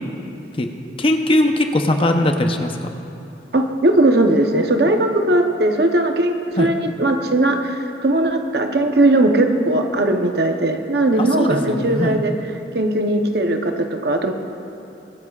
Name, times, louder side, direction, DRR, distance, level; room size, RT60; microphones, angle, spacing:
voice 1, 1.0-2.7 6.6-6.7 11.2-12.2, left 1 dB, 30° left, 5 dB, 0.7 m, -19 dB
voice 2, 3.5-12.3 12.7-14.3, right 1 dB, 60° right, 5 dB, 0.9 m, -18 dB
23.5 x 12.5 x 2.4 m, 2.9 s
head